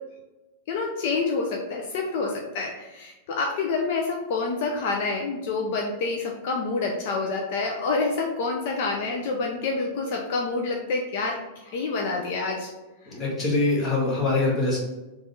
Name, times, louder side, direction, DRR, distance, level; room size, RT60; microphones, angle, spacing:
voice 1, 0.7-11.4 11.6-12.7, left 3 dB, 60° left, 1 dB, 0.6 m, -27 dB
voice 2, 13.1-14.8, left 2 dB, 25° left, -3 dB, 1.5 m, -23 dB
3.6 x 3.2 x 3.9 m, 1.1 s
supercardioid pair, 145°, 0 cm